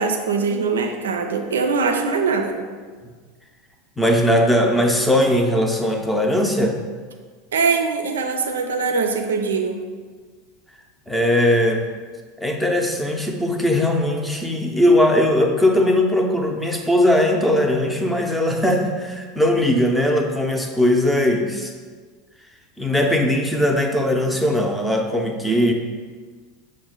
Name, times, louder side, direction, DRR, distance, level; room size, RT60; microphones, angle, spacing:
voice 1, 0.0-2.6 7.5-9.8, right 4 dB, 75° right, 5 dB, 0.4 m, -22 dB
voice 2, 4.0-6.8 11.1-11.9 12.4-21.7 22.8-25.7, left 1 dB, 5° left, 2 dB, 0.6 m, -19 dB
6.1 x 2.1 x 3.9 m, 1.5 s
figure-of-eight pair, 80°, 0 cm